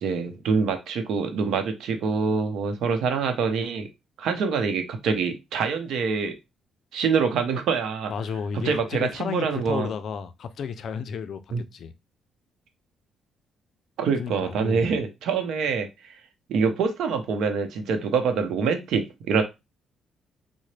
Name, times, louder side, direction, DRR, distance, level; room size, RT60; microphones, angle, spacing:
voice 1, 0.0-3.9 4.2-6.3 6.9-8.1 8.5-9.9 11.5-11.6 14.0-15.9 16.5-19.4, right 5 dB, 75° right, 0.7 m, -25 dB
voice 2, 8.1-11.9 14.2-14.9, left 6 dB, 60° left, 0.4 m, -33 dB
3.7 x 2.1 x 3.2 m
cardioid pair, 90°, 0 cm